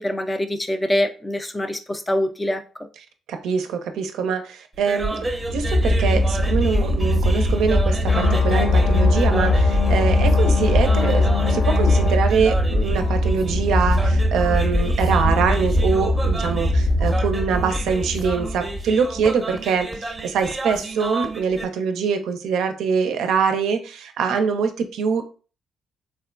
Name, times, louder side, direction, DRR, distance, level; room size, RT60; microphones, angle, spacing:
voice 1, 0.0-2.6, left 1 dB, 15° left, 0.4 m, -24 dB
voice 2, 3.3-25.2, right 6 dB, 80° right, 0.4 m, -24 dB
sound 1, 4.7-21.6, right 2 dB, 20° right, 0.7 m, -32 dB
sound 2, 5.1-19.3, equal, 80° left, 1.2 m, -21 dB
sound 3, 8.1-12.1, left 6 dB, 45° left, 0.7 m, -21 dB
3.4 x 2.1 x 2.4 m
cardioid pair, 90°, 0 cm